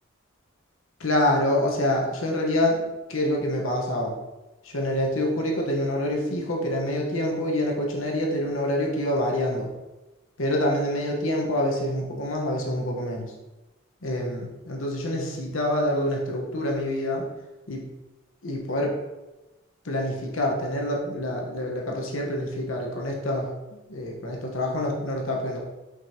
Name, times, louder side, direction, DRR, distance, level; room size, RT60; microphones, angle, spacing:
voice 1, 1.0-2.8 3.1-4.1 4.6-9.7 10.4-13.3 14.0-17.2 17.7-17.8 18.4-18.9 19.8-25.6, left 1 dB, 85° left, -1 dB, 1.2 m, -26 dB
6.2 x 5.2 x 2.9 m, 1.1 s
head